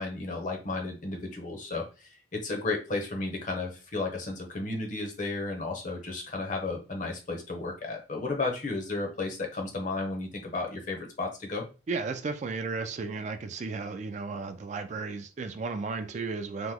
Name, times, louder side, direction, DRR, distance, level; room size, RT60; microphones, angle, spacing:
voice 1, 0.0-11.6, left 3 dB, 45° left, 2 dB, 0.8 m, -33 dB
voice 2, 11.9-16.7, right 4 dB, 40° right, 8 dB, 0.3 m, -34 dB
2.9 x 2.1 x 3.5 m, 0.33 s
head